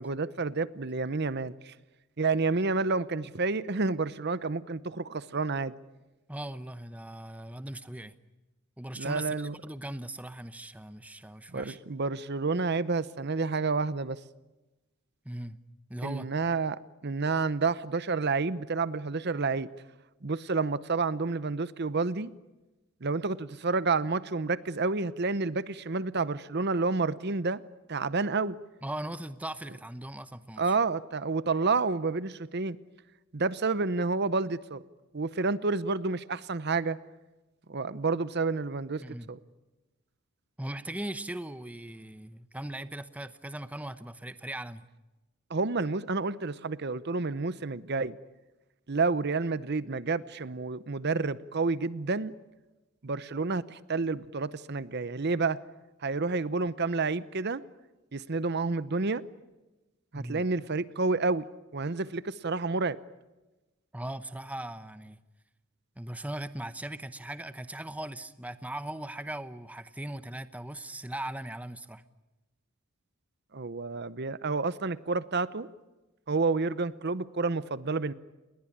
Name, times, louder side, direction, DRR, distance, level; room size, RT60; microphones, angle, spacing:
voice 1, 0.0-1.7 2.2-5.7 9.0-9.5 11.5-14.2 16.0-19.7 20.2-22.3 23.0-27.6 27.9-28.5 30.6-32.8 33.3-34.8 35.1-37.0 37.7-39.0 39.3-39.4 45.5-48.2 48.9-52.3 53.0-55.6 56.0-57.6 58.1-59.2 60.1-61.4 61.7-63.0 73.5-75.7 76.3-78.1, right 3 dB, 50° right, 0.8 m, -29 dB
voice 2, 6.3-8.1 8.8-11.8 15.2-15.6 15.9-16.3 28.8-30.8 39.0-39.3 40.6-44.8 60.1-60.4 63.9-65.2 66.0-72.0, right 1 dB, 5° right, 0.8 m, -39 dB
29.0 x 21.0 x 8.8 m
head